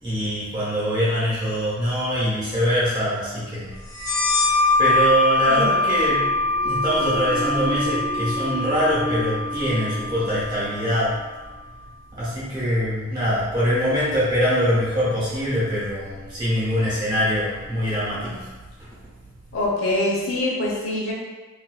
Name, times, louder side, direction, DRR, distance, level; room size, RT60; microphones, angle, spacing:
voice 1, 0.0-3.8 4.8-6.3 6.6-11.2 12.1-18.5 18.8-18.9, equal, 20° right, -10 dB, 1.0 m, -23 dB
sound 1, 3.9-11.2, left 2 dB, 20° left, 0.6 m, -23 dB
sound 2, 5.5-11.2, equal, 45° right, 0.9 m, -33 dB
voice 2, 19.5-21.1, left 1 dB, 75° left, -4 dB, 0.9 m, -24 dB
4.4 x 2.6 x 2.3 m, 1.3 s
head